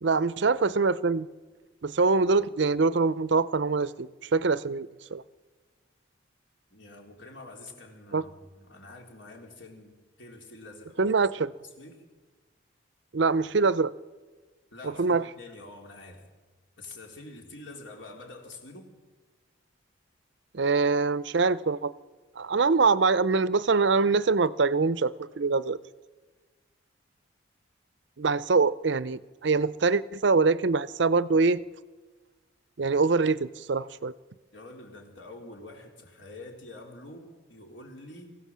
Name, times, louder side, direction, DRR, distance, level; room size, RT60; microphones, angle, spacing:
voice 1, 0.0-1.3 1.8-5.2 8.1-8.2 11.0-11.5 13.1-13.9 15.0-15.2 20.5-21.9 22.4-25.8 28.2-31.6 32.8-34.1, right 4 dB, 65° right, 0.6 m, -24 dB
voice 2, 6.7-11.2 11.6-12.0 14.7-16.3 16.8-18.9 34.5-38.4, left 2 dB, 65° left, 3.8 m, -46 dB
24.0 x 16.0 x 7.4 m
head